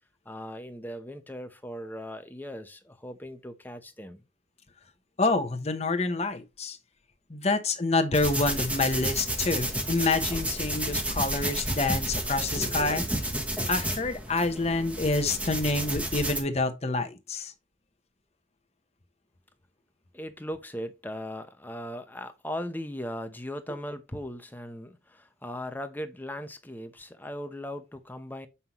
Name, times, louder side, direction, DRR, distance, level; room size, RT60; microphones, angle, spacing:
voice 1, 0.3-4.2 20.1-28.5, equal, 10° left, 0.7 m, -38 dB
voice 2, 5.2-6.8 7.3-13.0 13.7-17.5, left 3 dB, 35° left, 0.9 m, -27 dB
sound 1, 8.1-16.4, right 1 dB, 5° right, 1.0 m, -31 dB
7.4 x 5.6 x 3.0 m
head